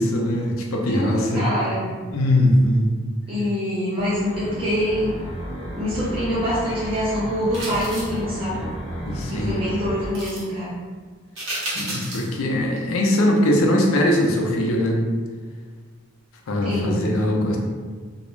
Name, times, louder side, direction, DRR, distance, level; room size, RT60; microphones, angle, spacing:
voice 1, 0.0-1.4 2.1-2.9 9.1-9.5 11.7-15.0 16.5-17.6, left 1 dB, 85° left, 0 dB, 0.5 m, -21 dB
voice 2, 0.9-1.9 3.3-5.2 5.7-8.6 9.3-10.8 16.6-17.1, equal, 25° right, -10 dB, 0.5 m, -25 dB
sound 1, 4.0-10.1, equal, 25° left, 0.7 m, -33 dB
sound 2, 7.5-8.2 10.1-10.4 11.4-12.3 12.7-12.8, right 1 dB, 65° right, 0.9 m, -31 dB
2.3 x 2.0 x 3.1 m, 1.5 s
head